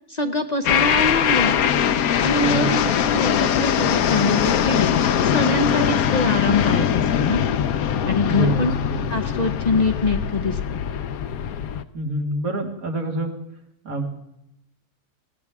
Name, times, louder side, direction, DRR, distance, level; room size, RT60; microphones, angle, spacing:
voice 1, 0.1-1.6 2.2-4.9 5.2-7.4 8.1-8.7 9.1-10.8, left 2 dB, 40° left, 7 dB, 0.6 m, -24 dB
sound 1, 0.6-11.8, left 9 dB, 75° left, 1.2 m, -21 dB
voice 2, 2.4-2.9 8.3-9.0 11.9-13.3 13.8-14.1, right 1 dB, 65° right, 1 dB, 2.7 m, -26 dB
21.0 x 16.0 x 3.6 m, 0.82 s
omnidirectional pair, 1.6 m